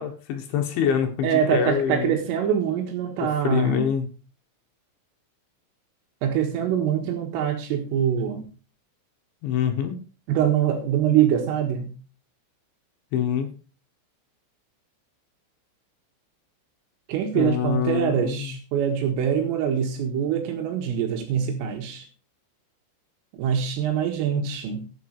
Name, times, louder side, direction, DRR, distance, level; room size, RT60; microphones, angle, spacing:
voice 1, 0.0-2.2 3.4-4.1 9.4-10.0 13.1-13.5 17.3-18.6, left 8 dB, 70° left, 5 dB, 3.7 m, -25 dB
voice 2, 1.2-3.9 6.2-8.5 10.3-11.9 17.1-22.0 23.3-24.8, right 9 dB, 85° right, 3 dB, 4.2 m, -24 dB
12.0 x 9.2 x 4.7 m, 0.34 s
omnidirectional pair, 5.8 m